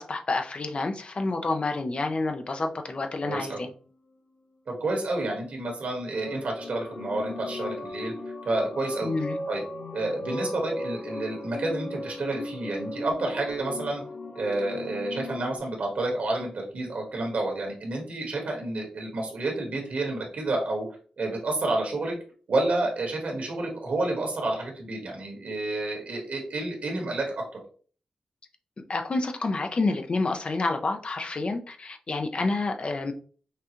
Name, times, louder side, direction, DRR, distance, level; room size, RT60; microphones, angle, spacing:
voice 1, 0.0-3.7 9.0-9.4 28.9-33.1, left 3 dB, 50° left, 0.7 m, -28 dB
voice 2, 3.2-3.6 4.7-8.1 8.4-9.1 9.5-9.6 9.9-14.0 14.3-20.9 21.2-22.1 22.5-27.6, right 2 dB, 70° right, 1.8 m, -29 dB
sound 1, 6.0-15.6, left 1 dB, 65° left, 1.2 m, -37 dB
5.8 x 2.4 x 3.0 m
cardioid pair, 60°, 2 cm